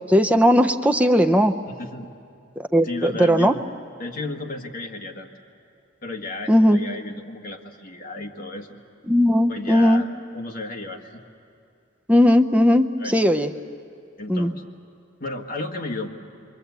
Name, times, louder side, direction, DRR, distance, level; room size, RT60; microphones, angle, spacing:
voice 1, 0.1-1.5 2.7-3.5 6.5-6.8 9.1-10.0 12.1-12.9 13.1-13.5 14.3-14.5, equal, 5° right, 6 dB, 0.6 m, -17 dB
voice 2, 1.7-2.1 2.8-3.6 4.0-5.3 6.0-8.8 9.5-11.2 13.0-13.2 14.2-14.6 15.2-16.1, left 2 dB, 45° left, 0 dB, 1.7 m, -33 dB
28.0 x 24.5 x 8.1 m, 2.5 s
head